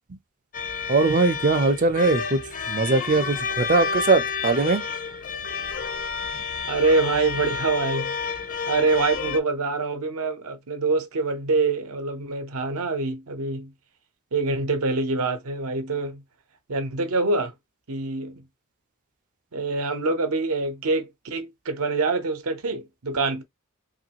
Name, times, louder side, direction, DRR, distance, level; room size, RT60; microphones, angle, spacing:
sound 1, 0.5-9.4, left 5 dB, 35° left, 0.4 m, -30 dB
voice 1, 0.9-2.4 2.7-4.8, right 3 dB, 35° right, 0.5 m, -21 dB
voice 2, 6.7-8.2 8.7-13.7 14.3-16.2 16.7-17.5 17.9-18.4 19.5-23.4, right 3 dB, 70° right, 0.7 m, -25 dB
3.0 x 2.5 x 2.8 m
head